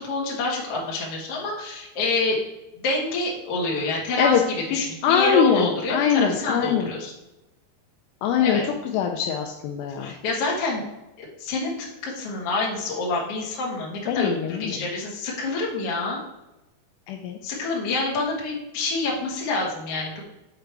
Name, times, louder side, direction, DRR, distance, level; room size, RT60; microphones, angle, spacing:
voice 1, 0.0-2.4 2.8-7.1 8.4-8.6 10.0-10.8 11.2-16.2 17.4-20.2, left 3 dB, 65° left, -3 dB, 1.5 m, -27 dB
voice 2, 5.0-6.9 8.2-8.6 8.9-10.1 14.1-14.7 17.1-17.4, left 7 dB, 80° left, 2 dB, 2.4 m, -22 dB
6.7 x 4.9 x 4.6 m, 0.98 s
omnidirectional pair, 5.3 m